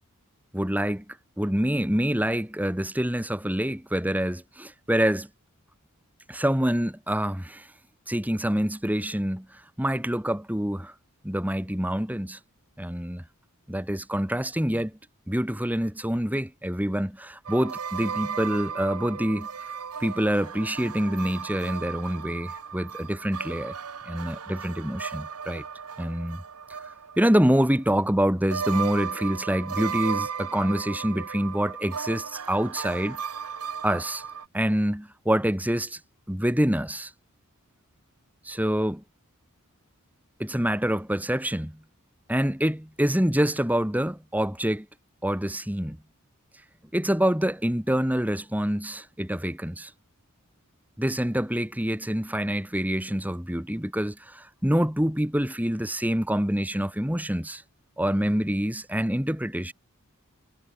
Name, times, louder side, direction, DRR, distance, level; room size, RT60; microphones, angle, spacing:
voice 1, 0.5-5.3 6.3-7.7 8.1-10.9 11.2-12.4 12.8-13.2 13.7-14.9 15.3-23.7 24.0-25.6 26.0-26.4 27.2-33.2 33.8-34.2 34.5-36.0 36.3-37.1 38.4-39.0 40.4-41.8 42.3-44.9 45.2-46.0 46.9-49.9 51.0-57.6 58.0-59.7, equal, 5° right, 2.3 m, -26 dB
sound 1, 17.4-28.2 28.5-34.4, right 6 dB, 85° right, 1.1 m, -35 dB
head